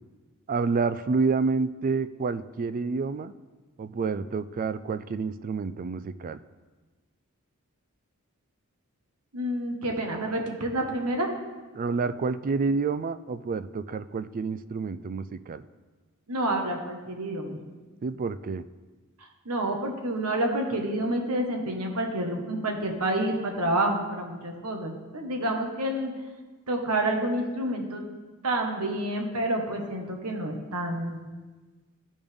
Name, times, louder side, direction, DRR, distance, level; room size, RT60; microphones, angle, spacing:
voice 1, 0.5-3.3 3.8-6.4 11.7-15.6 18.0-18.7, right 4 dB, 40° right, 13 dB, 0.3 m, -28 dB
voice 2, 9.3-11.3 16.3-17.6 19.4-26.1 26.7-28.0 28.4-31.2, right 1 dB, 80° right, 3 dB, 1.4 m, -28 dB
14.5 x 5.2 x 3.5 m, 1.3 s
head